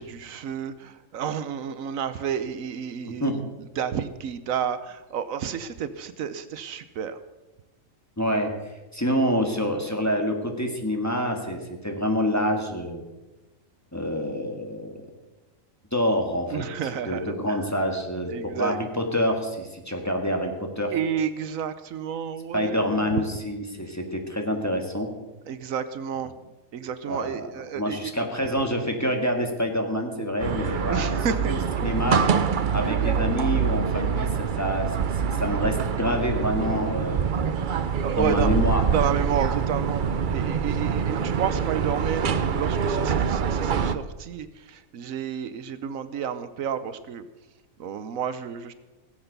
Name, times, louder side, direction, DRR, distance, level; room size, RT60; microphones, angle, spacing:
voice 1, 0.0-7.2 16.5-17.7 18.3-18.8 20.9-23.1 25.4-26.3 26.7-28.1 30.9-31.5 31.8-32.0 33.0-33.1 38.0-40.0 40.3-47.3 47.8-48.7, right 8 dB, 75° right, 12 dB, 1.1 m, -31 dB
voice 2, 8.2-13.0 13.9-15.0 15.9-16.6 17.0-20.9 22.5-25.1 27.1-27.4 27.8-31.2 31.5-32.2 32.7-35.1 35.4-37.4 38.2-38.8, equal, 10° left, 2 dB, 1.7 m, -27 dB
sound 1, 30.4-44.0, right 7 dB, 50° right, 0.6 m, -25 dB
17.5 x 8.0 x 6.7 m, 1.1 s
omnidirectional pair, 1.4 m